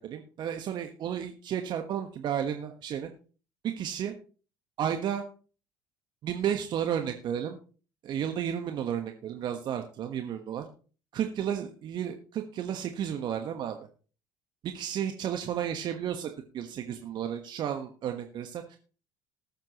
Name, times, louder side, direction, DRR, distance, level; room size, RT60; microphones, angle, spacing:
voice 1, 0.0-3.1 3.6-4.1 4.8-5.2 6.2-7.6 8.0-10.6 11.1-13.9 14.6-16.3 16.5-18.8, right 9 dB, 50° right, 5 dB, 1.3 m, -32 dB
19.5 x 7.5 x 3.0 m, 0.38 s
hypercardioid pair, 65°, 10 cm